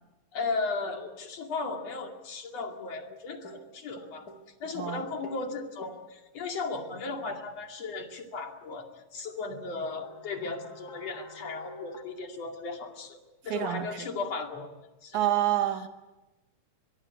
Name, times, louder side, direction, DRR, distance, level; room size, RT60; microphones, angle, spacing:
voice 1, 0.3-4.3 4.6-14.7 15.0-15.3, left 3 dB, 55° left, 3 dB, 3.4 m, -36 dB
sound 1, 2.7-3.2 3.4-5.5 5.8-6.1 9.1-9.2 9.5-12.0, equal, 35° left, 2.4 m, -48 dB
voice 2, 13.5-13.9 15.1-15.9, right 12 dB, 75° right, 8 dB, 2.8 m, -27 dB
24.0 x 22.0 x 8.5 m, 1.1 s
omnidirectional pair, 3.6 m